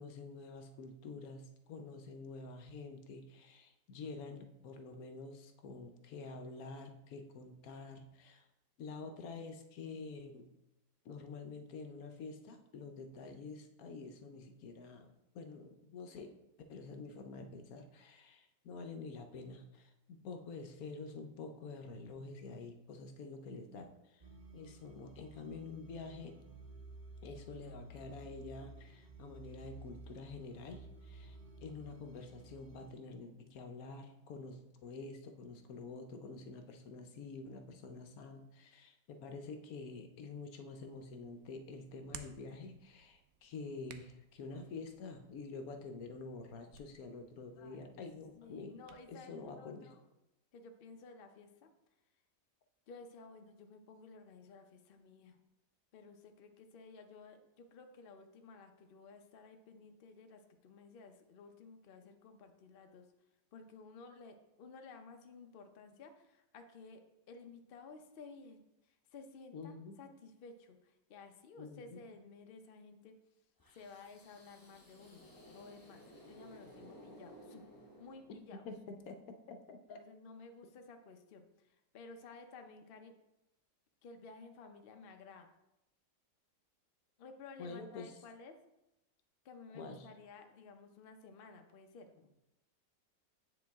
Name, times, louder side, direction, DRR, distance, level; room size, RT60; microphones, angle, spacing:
voice 1, 0.0-8.5 8.8-10.5 11.0-16.3 16.7-24.2 24.5-26.4 27.2-48.8 49.1-49.9 69.5-69.9 71.6-72.0 78.5-80.0 87.6-88.1 89.7-90.1, left 4 dB, 65° left, 6 dB, 1.0 m, -48 dB
sound 1, 24.2-32.9, right 2 dB, 55° right, 0.4 m, -54 dB
Hands, 40.7-49.1, right 8 dB, 75° right, 0.8 m, -59 dB
voice 2, 47.6-48.0 48.4-50.0 50.5-51.8 52.9-55.4 55.9-63.1 63.5-73.1 73.7-77.7 78.0-78.7 79.9-83.1 84.0-85.5 87.2-88.6 89.4-92.3, left 4 dB, 90° left, 5 dB, 0.5 m, -55 dB
sound 2, 73.6-78.7, equal, 20° left, 0.7 m, -57 dB
8.1 x 5.0 x 3.5 m, 0.89 s
omnidirectional pair, 1.9 m